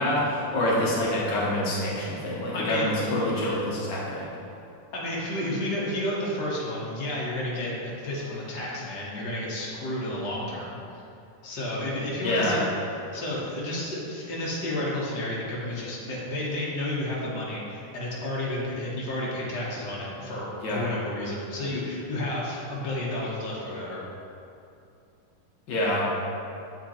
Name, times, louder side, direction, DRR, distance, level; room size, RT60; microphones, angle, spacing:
voice 1, 0.0-4.2 12.2-12.6 20.6-20.8 25.7-26.1, left 1 dB, 90° left, -5 dB, 0.9 m, -26 dB
voice 2, 2.5-3.0 4.9-10.8 11.4-12.6 13.1-24.0, left 1 dB, 55° left, -6 dB, 1.2 m, -31 dB
8.0 x 4.4 x 4.2 m, 2.6 s
omnidirectional pair, 3.5 m